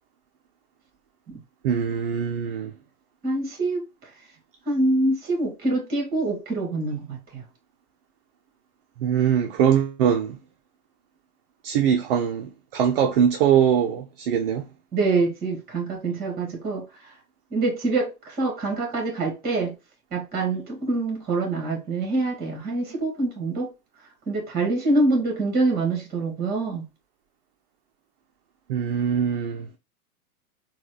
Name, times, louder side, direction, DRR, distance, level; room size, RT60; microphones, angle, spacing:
voice 1, 1.6-2.7 9.0-10.4 11.6-14.7 28.7-29.7, right 8 dB, 40° right, 0.5 m, -22 dB
voice 2, 3.2-4.1 4.6-7.4 14.9-17.1 17.5-19.7 20.1-23.7 24.3-26.8, right 2 dB, 20° right, 1.7 m, -25 dB
3.9 x 2.3 x 3.2 m
hypercardioid pair, 125°, 45 cm